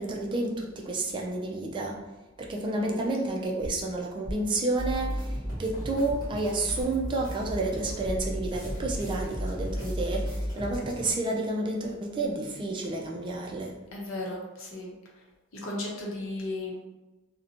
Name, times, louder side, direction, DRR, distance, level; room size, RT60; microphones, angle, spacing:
voice 1, 0.0-2.0 2.4-13.8, right 2 dB, 25° right, -1 dB, 0.3 m, -30 dB
voice 2, 2.7-3.0 13.9-14.9 15.6-16.8, left 2 dB, 75° left, -2 dB, 0.7 m, -35 dB
sound 1, 3.6-3.9 4.2-4.5 4.9-5.7 6.1-6.2 6.8-7.0 7.4-7.5 8.0-8.2 8.7-8.9 9.4-9.8, equal, 45° left, 0.9 m, -41 dB
sound 2, 4.8-11.1, equal, 20° left, 1.0 m, -34 dB
2.6 x 2.1 x 2.7 m, 1.1 s
head